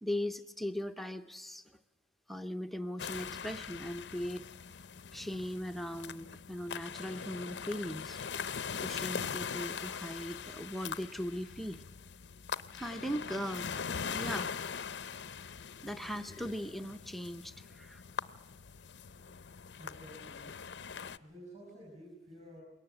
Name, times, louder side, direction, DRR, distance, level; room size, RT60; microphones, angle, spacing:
voice 1, 0.0-1.8 2.3-4.4 5.1-8.2 8.8-11.8 12.7-13.7 14.1-14.6 15.8-18.0, equal, ahead, 7 dB, 0.6 m, -39 dB
sound 1, 3.0-21.2, left 6 dB, 65° left, 0.6 m, -42 dB
voice 2, 19.7-20.5 21.2-22.6, equal, 40° right, -2 dB, 5.5 m, -52 dB
21.5 x 18.0 x 7.7 m, 1.1 s
head